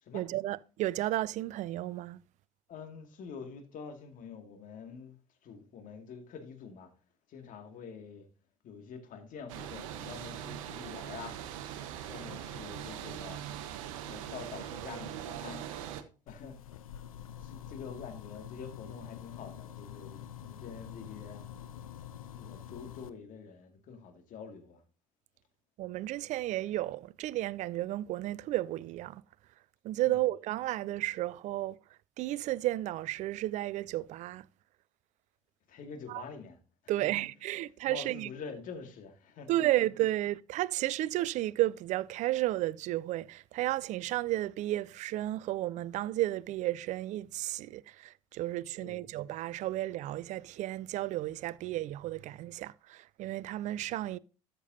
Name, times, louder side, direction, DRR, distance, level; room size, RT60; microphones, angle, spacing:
voice 1, 0.1-2.2 25.8-29.2 29.8-31.8 32.2-34.5 36.1-36.2 36.9-38.3 39.5-54.2, right 15 dB, 45° right, 0.4 m, -33 dB
voice 2, 2.7-5.2 5.4-6.9 7.3-8.3 8.6-11.4 12.1-13.4 14.1-15.7 16.3-16.6 17.4-21.5 22.3-24.8 30.0-30.2 35.7-36.6 37.0-37.2 37.9-39.6 48.8-49.1, left 6 dB, 50° left, 2.2 m, -46 dB
sound 1, 9.5-16.0, right 10 dB, 70° right, 0.9 m, -41 dB
sound 2, 16.3-23.1, left 10 dB, 80° left, 0.6 m, -46 dB
13.0 x 6.7 x 2.7 m
hypercardioid pair, 65°, 18 cm